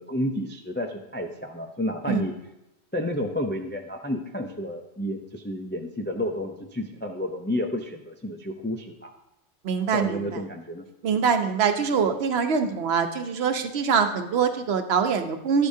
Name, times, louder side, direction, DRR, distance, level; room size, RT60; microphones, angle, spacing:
voice 1, 0.0-2.3 2.9-9.1 9.9-10.9, left 1 dB, 15° left, 3 dB, 0.4 m, -30 dB
voice 2, 9.6-10.4 11.0-15.7, right 6 dB, 65° right, 8 dB, 1.0 m, -24 dB
11.5 x 8.3 x 2.7 m, 0.92 s
omnidirectional pair, 1.2 m